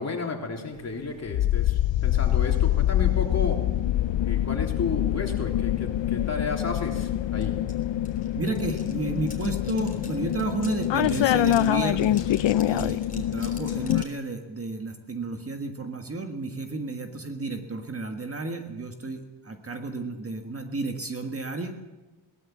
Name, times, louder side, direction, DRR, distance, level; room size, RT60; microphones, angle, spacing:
voice 1, 0.0-3.6 4.2-7.6, left 4 dB, 35° left, 1 dB, 3.5 m, -32 dB
sound 1, 1.3-14.0, left 13 dB, 70° left, 0.6 m, -25 dB
sound 2, 7.4-7.5 7.7-14.2, left 3 dB, 15° left, 3.5 m, -47 dB
voice 2, 8.4-12.2 12.6-21.8, right 3 dB, 30° right, 5 dB, 1.5 m, -32 dB
21.5 x 18.5 x 7.3 m, 1.2 s
wide cardioid pair, 165°, 46 cm